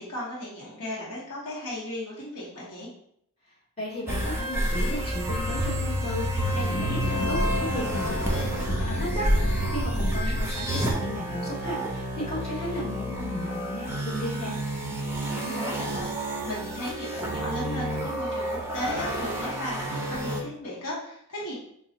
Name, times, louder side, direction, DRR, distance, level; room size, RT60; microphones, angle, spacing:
voice 1, 0.0-2.9 9.9-10.4 15.3-21.6, left 1 dB, 85° left, -5 dB, 1.0 m, -36 dB
voice 2, 3.8-14.6, left 1 dB, 30° left, -9 dB, 1.5 m, -35 dB
sound 1, 4.1-20.4, right 1 dB, 10° right, 0.5 m, -29 dB
sound 2, 6.2-10.8, left 2 dB, 50° left, 0.6 m, -33 dB
4.1 x 2.3 x 2.8 m, 0.68 s
head